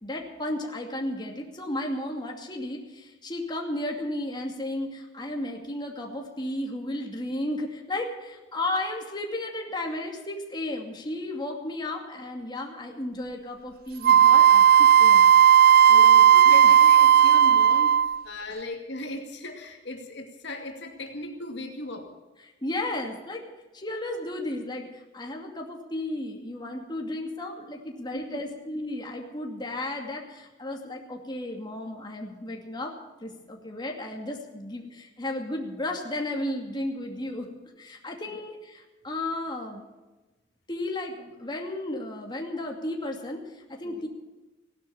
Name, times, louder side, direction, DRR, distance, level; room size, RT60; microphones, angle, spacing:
voice 1, 0.0-15.3 15.9-16.3 16.6-16.7 22.6-23.4 23.7-32.9 33.2-37.5 37.8-38.8 39.0-39.8 40.7-44.1, left 1 dB, 25° left, 1 dB, 2.5 m, -34 dB
Wind instrument woodwind instrument, 14.0-18.2, right 9 dB, 55° right, 0.4 m, -15 dB
voice 2, 15.9-22.1 28.1-28.2 38.3-38.4 43.8-44.1, left 1 dB, 70° left, 3 dB, 2.3 m, -37 dB
17.0 x 12.0 x 7.0 m, 1.1 s
head